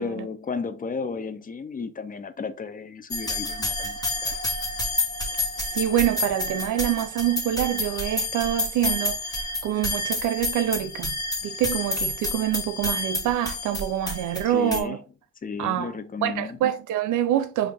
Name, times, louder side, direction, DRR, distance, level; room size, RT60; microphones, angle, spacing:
voice 1, 0.0-4.4 14.4-15.0 15.4-16.6, left 5 dB, 30° left, 0.5 m, -33 dB
sound 1, 3.1-14.8, left 2 dB, 10° left, 1.3 m, -29 dB
voice 2, 5.6-9.2 9.6-11.1 11.4-15.0 15.6-15.9 16.2-17.7, right 11 dB, 80° right, 0.6 m, -26 dB
5.1 x 2.5 x 3.3 m
cardioid pair, 90°, 30 cm